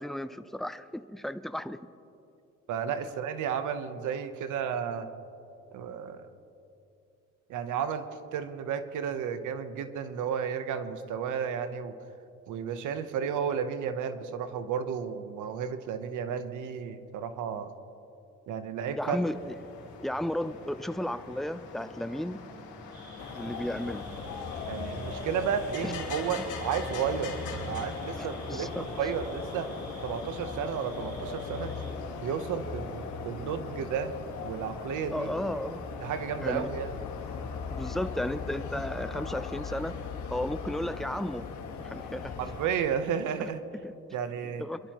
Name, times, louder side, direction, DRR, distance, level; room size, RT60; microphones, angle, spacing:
voice 1, 0.0-1.8 18.9-19.4 20.0-22.4 23.3-24.1 25.8-25.9 28.2-28.8 35.1-35.8 36.4-36.7 37.7-40.0 40.3-41.5 41.8-42.3 43.8-43.9 44.6-44.8, left 1 dB, ahead, 12 dB, 0.5 m, -34 dB
voice 2, 2.7-5.1 5.7-6.3 7.5-11.9 12.5-17.7 18.5-19.2 24.7-27.3 27.7-29.7 30.0-31.7 32.2-34.1 34.4-35.3 36.0-36.9 42.4-43.6 44.1-44.6, right 7 dB, 85° right, 10 dB, 0.9 m, -32 dB
sound 1, 19.0-38.7, left 3 dB, 85° left, 2.9 m, -44 dB
sound 2, 22.9-31.9, right 3 dB, 50° right, 2.5 m, -53 dB
sound 3, 23.2-42.7, left 5 dB, 70° left, 1.5 m, -39 dB
26.0 x 12.0 x 3.0 m, 2.7 s
cardioid pair, 90°, 30 cm